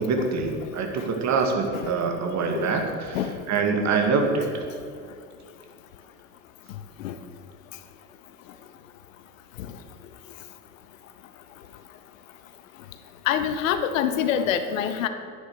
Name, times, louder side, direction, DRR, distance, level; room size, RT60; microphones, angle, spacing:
voice 1, 0.0-3.2 3.5-4.6, right 4 dB, 40° right, 3 dB, 2.3 m, -25 dB
voice 2, 13.3-15.1, left 9 dB, 65° left, 10 dB, 1.0 m, -25 dB
11.0 x 10.0 x 6.5 m, 2.3 s
figure-of-eight pair, 70°, 43 cm